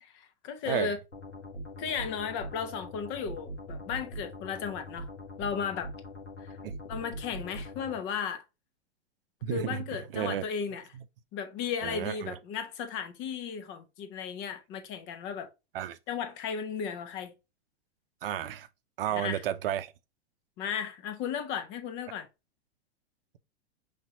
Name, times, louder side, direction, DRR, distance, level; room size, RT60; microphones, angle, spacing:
voice 1, 0.0-1.0 1.8-5.1 5.4-5.9 6.4-6.6 6.8-8.4 9.5-10.8 11.3-15.5 16.1-17.3 19.1-19.4 20.6-22.3, left 6 dB, 35° left, 1.1 m, -35 dB
sound 1, 1.1-8.0, equal, 80° left, 1.6 m, -42 dB
voice 2, 9.4-10.4 10.9-11.0 11.8-12.3 15.7-16.0 18.2-18.7 19.0-19.9, right 10 dB, 55° right, 0.7 m, -32 dB
5.7 x 3.4 x 2.7 m
figure-of-eight pair, 100°, 34 cm